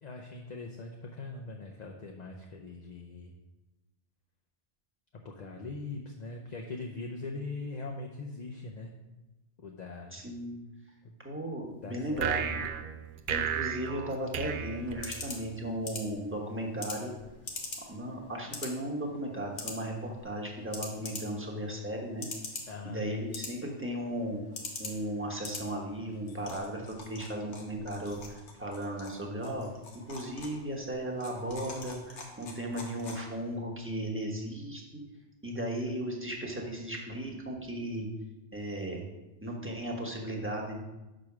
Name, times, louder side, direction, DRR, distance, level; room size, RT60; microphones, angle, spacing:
voice 1, 0.0-3.3 5.2-8.9 9.6-10.2 11.0-11.2 11.8-12.7 22.7-23.1, left 3 dB, 45° left, 1 dB, 0.7 m, -41 dB
voice 2, 10.1-10.6 11.2-12.5 13.3-17.1 17.9-22.3 22.8-24.4 24.8-28.2 28.5-29.7 29.9-35.0 35.4-38.1 38.5-39.1 39.4-40.8, right 1 dB, 10° right, -1 dB, 1.1 m, -36 dB
sound 1, 12.2-15.6, right 8 dB, 60° right, 0.6 m, -34 dB
sound 2, 14.2-33.6, left 3 dB, 85° left, 1.5 m, -45 dB
6.1 x 5.0 x 6.0 m, 1.1 s
omnidirectional pair, 1.2 m